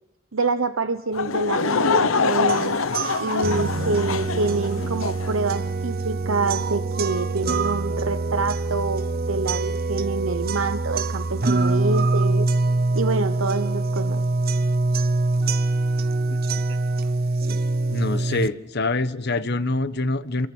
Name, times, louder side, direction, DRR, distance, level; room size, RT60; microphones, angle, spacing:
voice 1, 0.3-2.8 3.2-12.5 12.9-14.3 16.7-16.8, right 3 dB, 80° right, 0.9 m, -26 dB
Laughter / Crowd, 1.1-5.3, left 4 dB, 85° left, 1.0 m, -24 dB
sound 1, 2.5-18.5, right 2 dB, 50° right, 0.9 m, -24 dB
voice 2, 17.9-20.5, left 2 dB, 55° left, 1.2 m, -25 dB
28.5 x 23.5 x 6.3 m
head